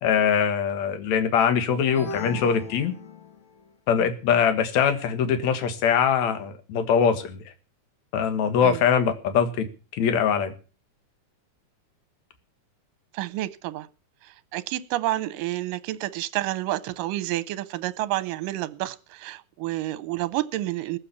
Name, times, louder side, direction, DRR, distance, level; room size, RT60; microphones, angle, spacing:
voice 1, 0.0-2.9 3.9-7.4 8.1-9.7 9.9-10.5, left 7 dB, 60° left, 9 dB, 2.7 m, -22 dB
sound 1, 1.8-3.7, left 6 dB, 90° left, 4.1 m, -38 dB
voice 2, 13.1-13.9 14.2-21.0, right 16 dB, 80° right, 16 dB, 2.4 m, -29 dB
18.5 x 7.5 x 7.0 m, 0.36 s
omnidirectional pair, 3.9 m